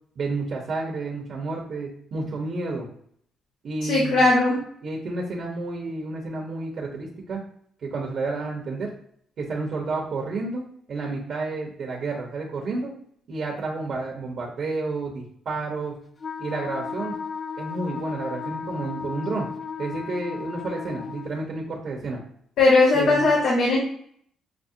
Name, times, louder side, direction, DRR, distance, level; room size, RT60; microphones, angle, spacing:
voice 1, 0.2-2.9 3.6-4.2 4.8-7.4 7.8-8.9 9.4-10.6 10.9-12.9 13.3-16.0 16.4-17.1 17.6-19.5 19.8-22.2 22.9-23.3, right 3 dB, 60° right, 0 dB, 1.0 m, -30 dB
voice 2, 3.9-4.6 22.6-23.8, left 2 dB, 80° left, -5 dB, 1.1 m, -18 dB
Wind instrument woodwind instrument, 16.2-21.4, left 6 dB, 40° left, 0.4 m, -34 dB
6.1 x 2.0 x 2.7 m, 0.65 s
cardioid pair, 90°, 0 cm